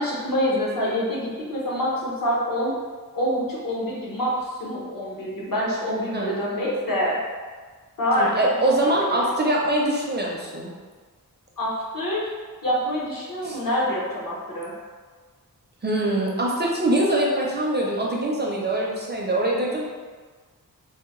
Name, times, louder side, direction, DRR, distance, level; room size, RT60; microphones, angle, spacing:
voice 1, 0.0-2.7 3.1-7.2 8.0-8.6 9.1-9.3 11.6-12.3 12.6-14.7, equal, 65° left, -5 dB, 0.9 m, -26 dB
voice 2, 8.2-10.7 13.4-13.6 15.8-19.8, right 1 dB, 30° right, -3 dB, 0.4 m, -23 dB
3.4 x 2.1 x 3.0 m, 1.5 s
wide cardioid pair, 115°, 36 cm